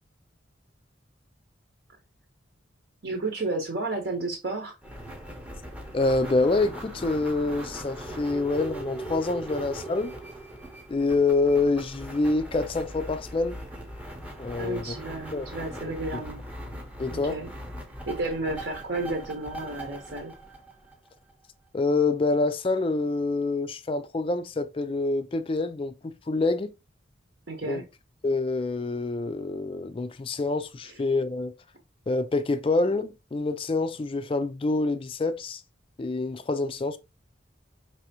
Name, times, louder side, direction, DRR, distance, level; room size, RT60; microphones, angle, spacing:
voice 1, 3.0-4.7 14.5-16.4 17.1-17.5 18.1-20.3 27.5-27.9, right 2 dB, 60° right, 0.9 m, -32 dB
sound 1, 4.8-21.3, right 1 dB, 5° right, 0.7 m, -40 dB
voice 2, 5.9-10.1 10.9-13.6 14.4-15.0 15.3-15.5 15.7-16.2 17.0-17.4 21.7-26.7 27.6-27.8 28.2-31.5 32.1-35.6 36.0-37.0, left 3 dB, 25° left, 0.3 m, -26 dB
4.7 x 3.3 x 2.8 m
head